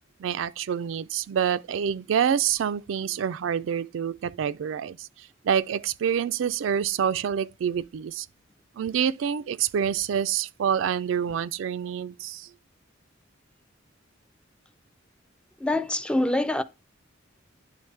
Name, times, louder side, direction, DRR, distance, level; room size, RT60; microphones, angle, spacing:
voice 1, 0.2-5.1 5.4-8.3 8.8-12.5, right 8 dB, 70° right, 0.3 m, -27 dB
voice 2, 15.6-16.6, left 1 dB, 5° left, 0.3 m, -25 dB
10.5 x 3.9 x 3.2 m
head